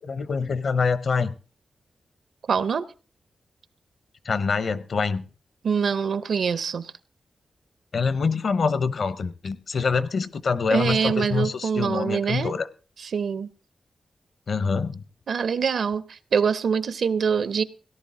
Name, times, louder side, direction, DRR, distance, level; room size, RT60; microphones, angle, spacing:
voice 1, 0.0-1.3 4.2-5.2 7.9-12.7 14.5-15.0, left 5 dB, 55° left, 0.8 m, -25 dB
voice 2, 2.5-2.9 5.6-6.9 10.7-12.5 13.0-13.5 15.3-17.6, right 6 dB, 70° right, 0.7 m, -24 dB
17.5 x 11.0 x 3.7 m
wide cardioid pair, 150°, 0 cm